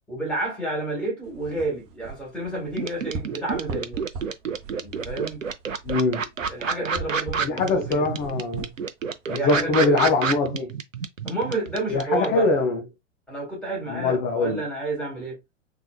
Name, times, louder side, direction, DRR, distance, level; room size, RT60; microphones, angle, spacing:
voice 1, 0.1-4.1 4.8-5.5 6.5-8.0 9.3-10.1 11.2-12.5 13.3-15.4, right 2 dB, 5° left, 2.3 m, -30 dB
sound 1, 1.2-9.7, right 4 dB, 25° right, 0.9 m, -40 dB
sound 2, 2.8-12.3, right 6 dB, 85° right, 0.6 m, -28 dB
voice 2, 5.8-6.2 7.4-8.7 9.3-10.7 11.9-12.8 13.9-14.6, left 3 dB, 25° left, 0.7 m, -23 dB
3.7 x 3.2 x 2.3 m
figure-of-eight pair, 100°, 38 cm